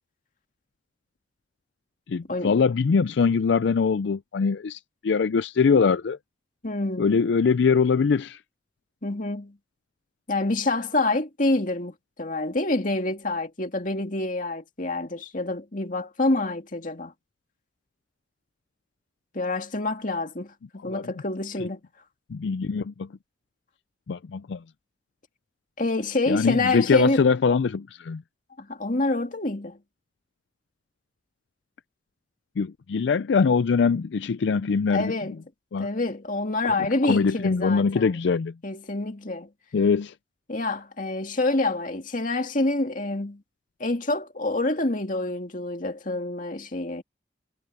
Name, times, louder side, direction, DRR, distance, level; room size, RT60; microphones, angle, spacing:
voice 1, 2.1-6.2 7.0-8.4 20.8-21.1 21.6-21.7 22.3-23.1 24.1-24.6 26.3-28.2 32.6-35.1 35.7-35.9 36.6-38.5 39.7-40.1, left 5 dB, 70° left, 0.4 m, -23 dB
voice 2, 6.6-7.1 9.0-9.6 10.3-17.1 19.3-21.8 25.8-27.2 28.6-29.8 34.9-35.4 35.8-38.1 38.6-39.5 40.5-43.4 43.8-47.0, left 2 dB, 45° left, 2.3 m, -27 dB
head